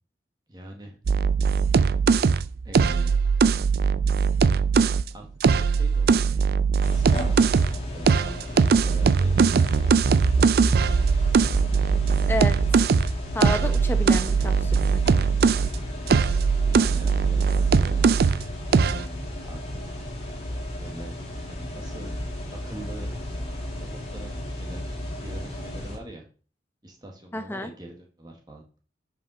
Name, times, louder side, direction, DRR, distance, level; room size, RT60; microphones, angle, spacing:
voice 1, 0.5-1.0 2.6-3.2 5.1-6.5 6.8-7.3 7.9-10.0 16.6-18.3 19.4-20.0 20.5-22.2 22.6-23.1 23.8-26.3 26.8-28.6, right 1 dB, 20° right, 1 dB, 1.2 m, -43 dB
sound 1, 1.1-5.0 5.4-7.8 8.1-15.7 16.1-18.4 18.7-19.0, right 5 dB, 55° right, 0.3 m, -20 dB
sound 2, 6.8-26.0, left 1 dB, 35° left, 2.1 m, -34 dB
voice 2, 12.3-12.9 13.3-15.0 27.3-27.7, left 1 dB, 10° left, 7 dB, 0.7 m, -30 dB
5.7 x 5.1 x 6.0 m, 0.39 s
head